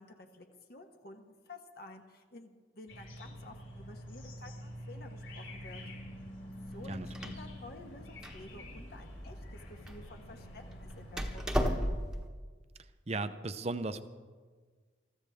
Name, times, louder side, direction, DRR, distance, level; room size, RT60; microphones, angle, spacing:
voice 1, 0.0-5.8 6.7-11.7, left 2 dB, 50° left, 4 dB, 1.2 m, -52 dB
sound 1, 2.9-11.7, left 1 dB, 75° left, 4.9 m, -47 dB
Door, 6.7-12.3, equal, 5° right, 1.1 m, -37 dB
voice 2, 6.9-7.3 13.1-14.0, right 3 dB, 35° right, 11 dB, 0.6 m, -36 dB
23.0 x 14.0 x 3.5 m, 1.5 s
head